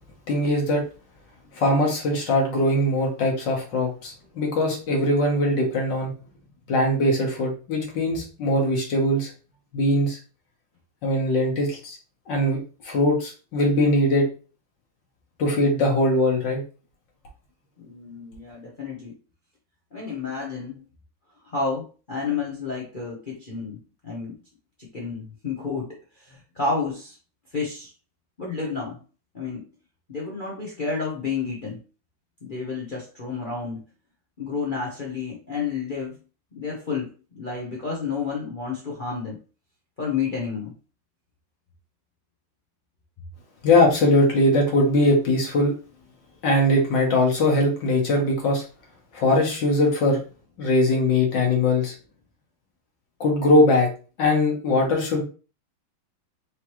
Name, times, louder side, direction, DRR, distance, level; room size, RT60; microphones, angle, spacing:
voice 1, 0.3-0.8 1.6-6.1 6.7-9.3 9.7-10.2 11.0-12.0 12.3-12.6 12.9-14.3 15.4-16.6 43.6-45.7 46.4-48.6 49.1-50.2 50.6-51.9 53.2-53.9 54.2-55.2, left 1 dB, 60° left, -1 dB, 1.8 m, -21 dB
voice 2, 17.8-19.1 19.9-20.8 21.5-24.4 24.8-27.2 27.5-27.9 28.4-29.0 29.3-29.7 30.1-31.8 32.4-33.8 34.4-36.2 36.5-37.1 37.3-39.4 40.0-40.7, left 5 dB, 75° left, -4 dB, 0.4 m, -30 dB
4.8 x 3.0 x 3.0 m, 0.36 s
omnidirectional pair, 2.3 m